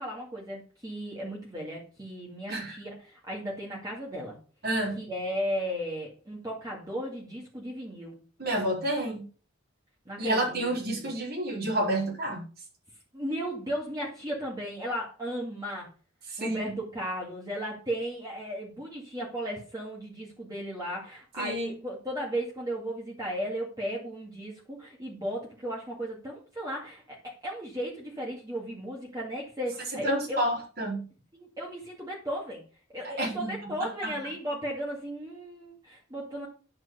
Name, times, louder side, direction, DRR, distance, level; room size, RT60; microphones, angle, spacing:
voice 1, 0.0-4.4 5.0-8.2 10.1-11.1 13.1-15.9 16.4-30.4 31.3-32.6 32.9-36.5, equal, 20° right, -3 dB, 2.3 m, -35 dB
voice 2, 4.6-5.0 8.4-9.2 10.2-12.4 16.3-16.7 21.4-21.7 30.0-31.0 33.2-33.5 34.0-34.1, right 1 dB, 50° right, -2 dB, 4.0 m, -29 dB
10.5 x 4.7 x 6.8 m, 0.37 s
head